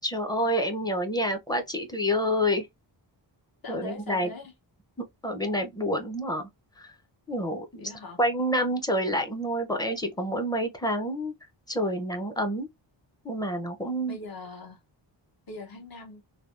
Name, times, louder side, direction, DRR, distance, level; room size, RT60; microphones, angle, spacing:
voice 1, 0.0-2.7 3.7-4.3 5.2-6.5 6.8-6.9 7.3-7.9 8.2-11.3 11.7-12.7 13.2-14.2, equal, 10° left, 0.5 m, -28 dB
voice 2, 3.6-4.5 7.8-8.2 14.1-14.8 15.5-16.2, left 3 dB, 50° left, 0.9 m, -41 dB
3.3 x 2.2 x 2.4 m
wide cardioid pair, 130°, 45 cm